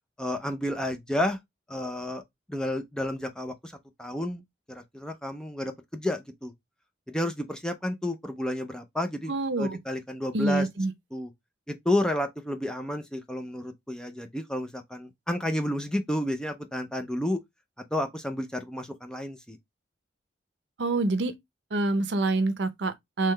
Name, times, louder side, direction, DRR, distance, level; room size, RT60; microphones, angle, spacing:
voice 1, 0.2-1.4 1.7-2.2 2.5-3.7 4.0-4.4 4.7-6.5 7.1-10.7 11.1-11.3 11.7-17.4 17.9-19.6, left 1 dB, 5° left, 0.5 m, -31 dB
voice 2, 9.3-9.8 10.3-10.9 20.8-21.3 21.7-23.3, right 2 dB, 70° right, 0.7 m, -26 dB
3.7 x 3.1 x 3.2 m
head